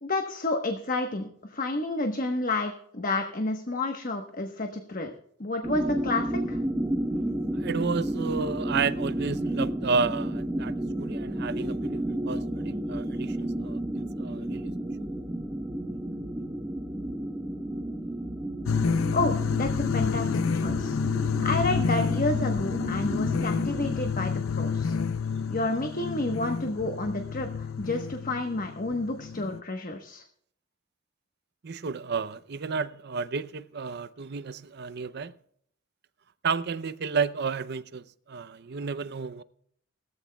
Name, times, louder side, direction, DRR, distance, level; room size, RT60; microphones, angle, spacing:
voice 1, 0.0-5.1 5.4-6.6 19.1-21.0 21.4-24.9 25.5-30.2, left 2 dB, 40° left, 1.2 m, -30 dB
sound 1, 5.6-23.9, right 1 dB, 10° right, 1.0 m, -32 dB
voice 2, 7.5-14.7 31.6-35.3 36.4-39.4, right 5 dB, 55° right, 0.6 m, -32 dB
sound 2, 18.6-29.6, left 5 dB, 75° left, 0.5 m, -29 dB
20.0 x 14.5 x 2.3 m
head